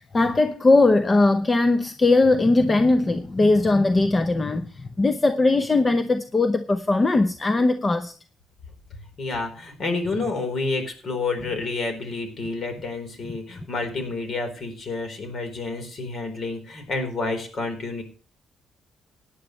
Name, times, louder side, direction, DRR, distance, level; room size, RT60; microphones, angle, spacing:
voice 1, 0.0-8.1, left 2 dB, 25° left, 0.8 m, -20 dB
voice 2, 9.2-18.0, left 3 dB, 50° left, 4.1 m, -29 dB
17.0 x 10.0 x 3.2 m
cardioid pair, 90°, 0 cm